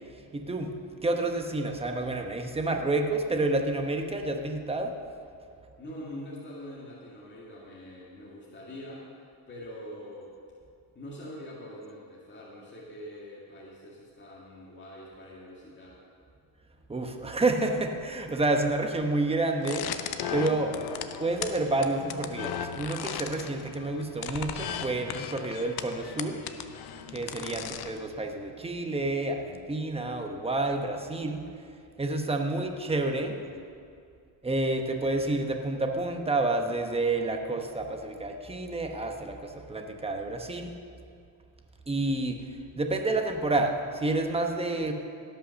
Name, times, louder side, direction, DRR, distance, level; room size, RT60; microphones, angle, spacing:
voice 1, 0.3-4.9 16.9-19.9 20.3-20.7 21.2-26.4 27.1-31.4 32.0-33.3 34.4-40.7 41.9-42.4 42.7-44.9, right 2 dB, 10° right, 4 dB, 1.1 m, -29 dB
voice 2, 5.8-9.1 9.5-10.3 11.0-16.0 20.6-20.9 27.5-27.7 33.2-33.6, left 1 dB, 25° left, -5 dB, 2.0 m, -44 dB
sound 1, 19.6-28.1, left 9 dB, 50° left, 0.8 m, -37 dB
17.0 x 5.7 x 6.4 m, 2.4 s
cardioid pair, 110°, 48 cm